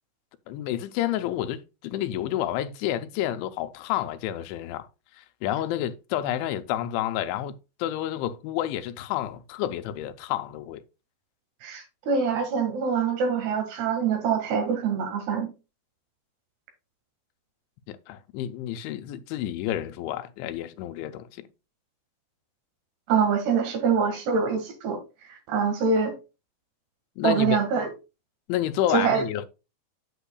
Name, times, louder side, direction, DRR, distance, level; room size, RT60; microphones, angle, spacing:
voice 1, 0.5-4.9 5.1-10.8 17.9-21.5 27.2-27.6 28.5-29.5, left 12 dB, 85° left, 3.1 m, -30 dB
voice 2, 11.6-15.5 23.1-25.0 25.3-26.1 27.2-27.9 28.9-29.2, right 6 dB, 65° right, 3.7 m, -24 dB
9.0 x 8.3 x 2.3 m
omnidirectional pair, 5.3 m